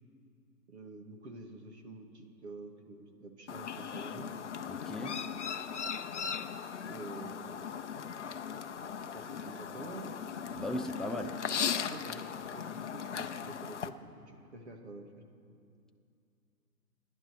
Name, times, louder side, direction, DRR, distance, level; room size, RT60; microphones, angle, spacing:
voice 1, 0.7-4.3 6.8-7.8 9.1-10.1 11.1-11.3 11.9-15.1, right 2 dB, 45° right, 3 dB, 2.0 m, -48 dB
Chirp tweet, 3.5-13.9, left 7 dB, 50° left, 0.7 m, -38 dB
voice 2, 4.7-5.2 10.5-11.3, left 1 dB, ahead, 3 dB, 0.3 m, -37 dB
27.0 x 11.0 x 4.7 m, 2.5 s
hypercardioid pair, 170°, 47 cm